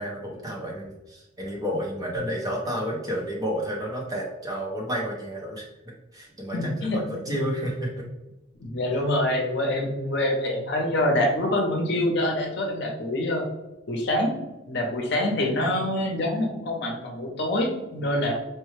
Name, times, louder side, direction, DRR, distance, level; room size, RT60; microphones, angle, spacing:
voice 1, 0.0-5.7 6.1-8.0, equal, 20° right, -2 dB, 0.7 m, -31 dB
voice 2, 6.5-7.0 7.3-7.4 8.6-13.4 13.9-14.3 14.7-18.3, left 1 dB, 55° left, 1 dB, 0.7 m, -25 dB
4.5 x 2.2 x 3.1 m, 0.99 s
head